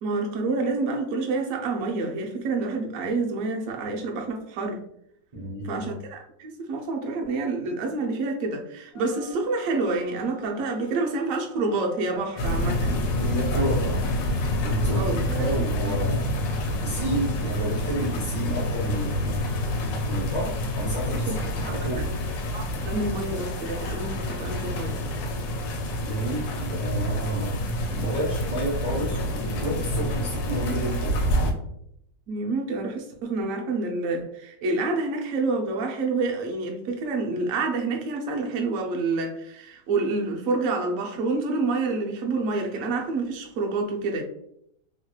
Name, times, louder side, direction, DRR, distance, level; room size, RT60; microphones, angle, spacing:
voice 1, 0.0-4.8 5.6-13.1 14.9-16.0 21.1-22.1 22.5-25.0 32.3-44.2, right 3 dB, 65° right, 1 dB, 0.8 m, -28 dB
voice 2, 5.3-5.8 13.1-14.0 14.6-16.3 16.8-19.4 20.0-22.1 26.0-27.6 27.9-31.2, right 1 dB, 85° right, -6 dB, 0.3 m, -30 dB
sound 1, 8.9-13.6, equal, ahead, 1.1 m, -47 dB
sound 2, 12.4-31.5, left 1 dB, 80° left, 1.3 m, -27 dB
3.1 x 2.9 x 2.3 m, 0.75 s
omnidirectional pair, 2.0 m